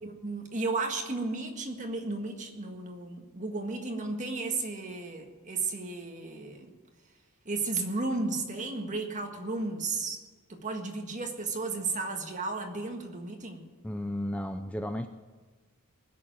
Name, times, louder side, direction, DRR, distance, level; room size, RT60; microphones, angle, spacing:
voice 1, 0.0-6.7 7.4-10.2 10.5-13.6, right 3 dB, 35° right, 3 dB, 1.7 m, -34 dB
voice 2, 13.8-15.1, left 1 dB, 5° left, 8 dB, 0.4 m, -33 dB
20.0 x 6.9 x 9.2 m, 1.4 s
head